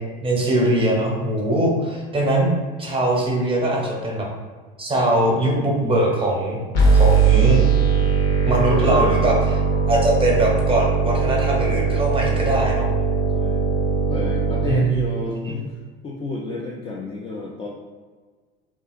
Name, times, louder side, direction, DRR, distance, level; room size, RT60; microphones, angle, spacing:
voice 1, 0.2-2.5 2.8-4.3 4.8-6.6 6.9-7.6 8.4-9.3 9.9-12.9 14.7-14.9 15.4-15.6, right 1 dB, 15° right, -2 dB, 0.7 m, -21 dB
sound 1, 6.7-14.7, right 5 dB, 60° left, 0.9 m, -19 dB
voice 2, 8.9-9.3 13.3-13.6 14.1-15.8 16.0-17.7, left 2 dB, 20° left, -3 dB, 0.3 m, -31 dB
2.7 x 2.5 x 2.4 m, 1.4 s
hypercardioid pair, 75°, 31 cm